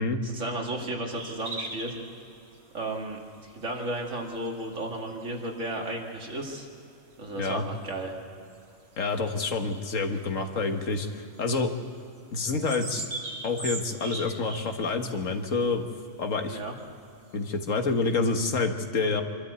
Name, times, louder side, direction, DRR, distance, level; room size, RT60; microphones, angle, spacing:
voice 1, 0.2-1.9 2.7-3.2 3.5-6.7 7.2-8.1 16.5-16.7, right 1 dB, 70° right, 0 dB, 2.7 m, -33 dB
sound 1, 1.1-18.5, right 2 dB, 55° right, 2.0 m, -44 dB
voice 2, 9.0-11.7 12.3-13.0 13.4-15.9 16.2-16.6 17.3-19.2, left 3 dB, 80° left, 5 dB, 1.8 m, -28 dB
25.0 x 12.5 x 8.2 m, 2.7 s
omnidirectional pair, 1.3 m